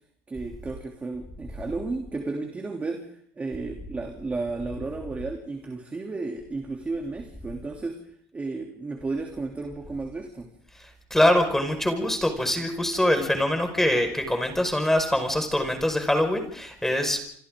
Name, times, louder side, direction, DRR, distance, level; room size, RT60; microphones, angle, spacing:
voice 1, 0.3-8.0 8.3-10.5, right 3 dB, 20° right, 3.1 m, -33 dB
voice 2, 11.1-17.2, left 1 dB, 5° left, 5.2 m, -23 dB
28.0 x 25.5 x 3.8 m
supercardioid pair, 110°, 7 cm